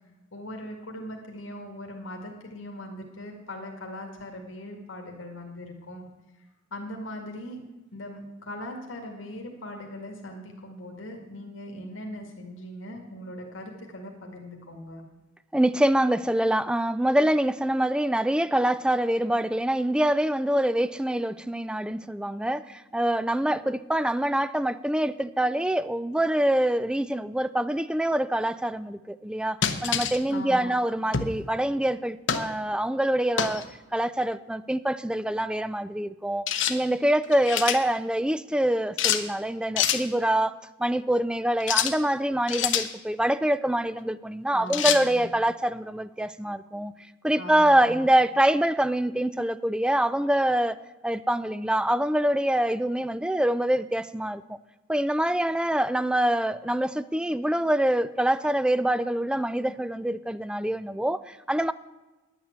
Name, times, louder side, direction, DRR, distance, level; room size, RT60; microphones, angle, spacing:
voice 1, 0.3-6.0 6.7-7.6 7.9-15.0 30.3-30.7 44.5-45.3 47.4-48.0, left 1 dB, 90° left, 2.0 m, -40 dB
voice 2, 15.5-33.7 33.9-46.9 47.2-50.8 51.0-54.4 54.9-61.7, right 1 dB, 5° right, 0.3 m, -25 dB
sound 1, 29.6-30.2 31.1-31.4 32.3-32.5 33.4-33.6 36.5-36.8 37.2-37.8 39.0-39.2 39.8-40.0 41.6-42.0 42.5-42.9 44.7-45.0, left 9 dB, 70° left, 0.9 m, -26 dB
10.5 x 8.9 x 7.9 m
head